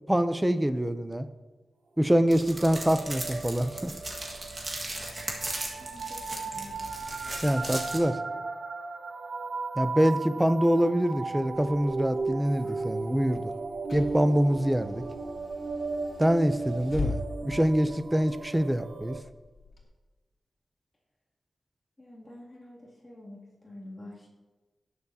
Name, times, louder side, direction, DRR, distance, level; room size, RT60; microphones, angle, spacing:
voice 1, 0.1-1.3 2.0-3.9 7.4-8.2 9.8-13.5 13.9-15.0 16.2-19.2, equal, 10° right, 10 dB, 0.5 m, -25 dB
sound 1, 2.3-8.0, right 2 dB, 35° right, 1.7 m, -37 dB
sound 2, 2.4-19.2, right 3 dB, 65° right, 0.8 m, -36 dB
voice 2, 5.8-6.8 22.0-24.3, left 1 dB, 20° left, -5 dB, 2.5 m, -47 dB
Car / Engine, 11.5-19.8, left 4 dB, 60° left, 2.8 m, -42 dB
18.5 x 7.0 x 2.8 m, 1.3 s
wide cardioid pair, 145°, 0 cm